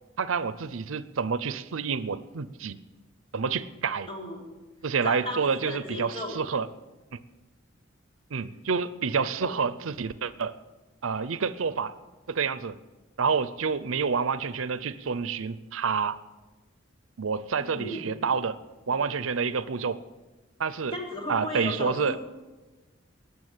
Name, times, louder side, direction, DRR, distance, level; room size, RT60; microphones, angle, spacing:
voice 1, 0.2-2.8 3.3-4.1 4.8-6.7 8.3-10.6 11.0-12.0 12.3-12.8 13.2-16.2 17.2-18.6 18.9-20.0 20.6-20.9 21.3-22.2, right 5 dB, 85° right, 15 dB, 0.6 m, -28 dB
voice 2, 4.1-4.4 5.0-6.4 9.4-9.6 17.6-18.1 20.9-22.2, left 1 dB, 30° left, -1 dB, 3.4 m, -35 dB
19.0 x 6.9 x 8.9 m, 1.2 s
head